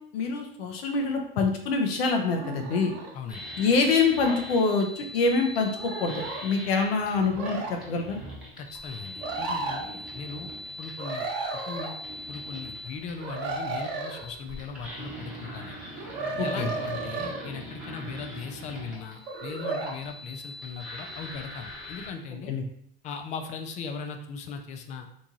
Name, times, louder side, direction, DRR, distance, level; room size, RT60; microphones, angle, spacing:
voice 1, 0.1-2.9 3.6-8.2 16.4-16.7 22.5-22.6, left 4 dB, 80° left, 3 dB, 0.7 m, -25 dB
sound 1, 2.3-3.1 4.2-4.4 5.8-6.4 7.3-7.7 9.2-9.8 11.0-11.9 13.2-14.3 16.0-17.6 19.3-20.0, right 3 dB, 55° right, 0.9 m, -33 dB
sound 2, 3.3-22.1, equal, 5° right, 1.1 m, -42 dB
voice 2, 8.6-11.3 11.5-12.0 12.3-15.8 16.4-22.5 23.0-25.1, left 5 dB, 25° left, 6 dB, 0.4 m, -38 dB
3.0 x 2.6 x 3.6 m, 0.68 s
supercardioid pair, 125°, 30 cm